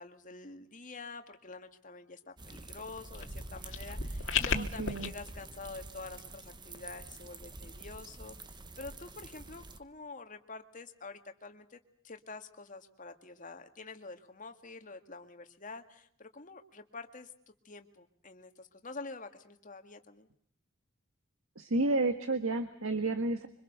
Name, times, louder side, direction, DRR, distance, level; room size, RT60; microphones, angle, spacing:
voice 1, 0.0-8.4 8.8-11.8 12.0-17.3 17.7-20.3, left 3 dB, 40° left, 7 dB, 2.0 m, -47 dB
sound 1, 2.4-9.8, right 2 dB, 20° right, 1.1 m, -46 dB
sound 2, 3.1-5.1, left 6 dB, 65° left, 2.0 m, -34 dB
voice 2, 4.5-5.1 21.5-23.5, right 2 dB, 90° right, 9 dB, 1.7 m, -31 dB
26.0 x 24.5 x 6.8 m, 0.66 s
head